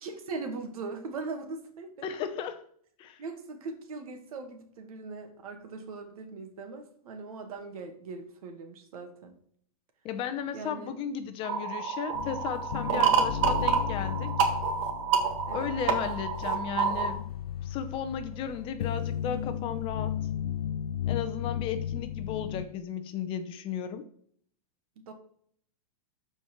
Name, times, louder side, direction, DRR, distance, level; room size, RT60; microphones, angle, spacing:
voice 1, 0.0-2.1 3.2-9.3 10.5-10.9 12.9-13.2 15.5-15.7 25.1-25.2, right 4 dB, 70° right, 5 dB, 2.0 m, -40 dB
voice 2, 2.0-2.6 3.0-3.2 10.0-14.3 15.5-17.2 17.6-20.1 21.1-24.0, left 8 dB, 30° left, 9 dB, 0.7 m, -35 dB
sound 1, 11.4-17.1, right 6 dB, 55° right, 1.8 m, -28 dB
sound 2, 12.1-22.6, left 10 dB, 75° left, 0.6 m, -35 dB
13.0 x 4.6 x 4.5 m, 0.63 s
supercardioid pair, 150°, 19 cm